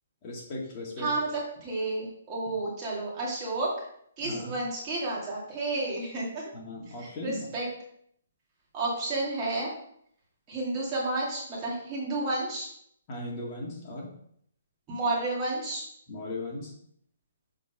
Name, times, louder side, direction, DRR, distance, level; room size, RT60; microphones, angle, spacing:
voice 1, 0.2-1.1 4.2-4.6 6.5-7.5 13.1-14.1 16.1-16.7, left 1 dB, 25° left, -4 dB, 1.9 m, -37 dB
voice 2, 1.0-3.9 4.2-6.5 7.0-7.7 8.7-9.7 10.5-12.7 14.9-15.8, right 2 dB, 20° right, -4 dB, 2.3 m, -31 dB
6.8 x 4.3 x 5.3 m, 0.68 s
hypercardioid pair, 165°, 0 cm